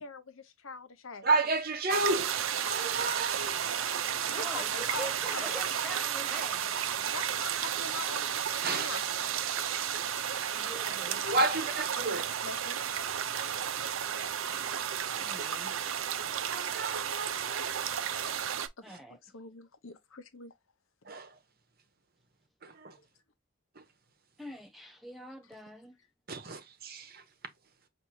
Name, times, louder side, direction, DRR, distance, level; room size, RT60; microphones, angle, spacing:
voice 1, 0.0-1.3 4.3-5.6 7.1-9.0 11.7-11.8 12.2-12.9 18.9-19.0 19.3-20.5, left 4 dB, 85° left, 0.9 m, -43 dB
voice 2, 1.2-3.9 8.6-8.9 9.7-9.9 11.2-12.3 16.5-18.0 18.9-19.0 21.0-21.4 22.6-23.0 23.8-23.9 26.3-27.2, right 3 dB, 50° right, 0.9 m, -32 dB
sound 1, 1.9-18.7, right 9 dB, 80° right, 0.6 m, -33 dB
voice 3, 4.3-6.8 10.5-11.3 15.1-15.7 18.8-19.2 24.4-26.0, equal, ahead, 0.3 m, -44 dB
6.0 x 2.7 x 2.7 m
head